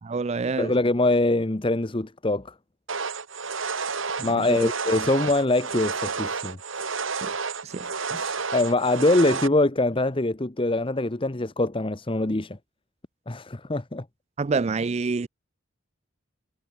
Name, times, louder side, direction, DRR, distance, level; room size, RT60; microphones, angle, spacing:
voice 1, 0.0-0.7 4.2-4.7 7.2-7.3 7.6-7.9 14.4-15.3, right 4 dB, 35° right, 0.4 m, -27 dB
voice 2, 0.6-2.5 4.2-6.6 8.1-12.6 13.3-14.0, left 2 dB, 25° left, 0.9 m, -23 dB
sound 1, 2.9-9.5, right 5 dB, 80° right, 2.5 m, -31 dB
head